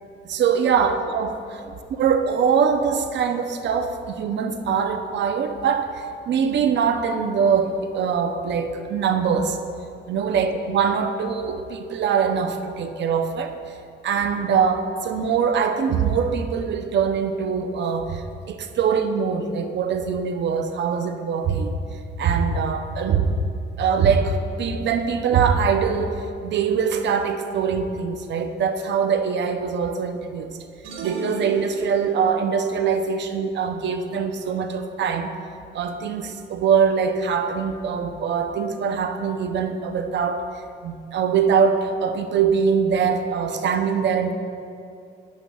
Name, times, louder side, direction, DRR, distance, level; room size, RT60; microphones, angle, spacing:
voice 1, 0.2-9.6 10.1-13.8 14.0-21.8 22.2-23.4 23.8-30.6 31.0-35.3 35.7-40.5 40.8-44.3, right 6 dB, 65° right, 7 dB, 0.6 m, -23 dB
sound 1, 30.8-32.4, right 3 dB, 90° right, 1.0 m, -34 dB
10.5 x 8.1 x 2.3 m, 2.5 s
cardioid pair, 90°, 20 cm